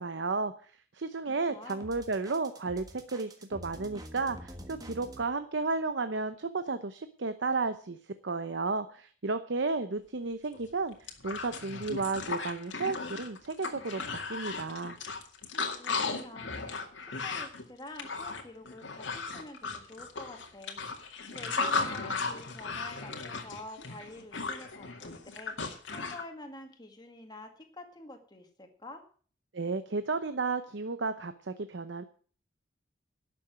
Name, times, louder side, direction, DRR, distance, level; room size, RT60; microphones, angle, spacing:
voice 1, 0.0-8.0 8.2-15.0 29.5-32.0, right 3 dB, 70° right, 10 dB, 0.8 m, -33 dB
voice 2, 1.3-2.0 15.8-20.8 21.3-25.5 25.9-29.0, left 1 dB, 20° left, 5 dB, 1.9 m, -48 dB
sound 1, 1.7-5.2, right 1 dB, 20° right, 1.5 m, -47 dB
sound 2, 10.5-10.6 10.9-26.2, left 4 dB, 75° left, 2.1 m, -36 dB
11.5 x 7.0 x 9.0 m, 0.44 s
head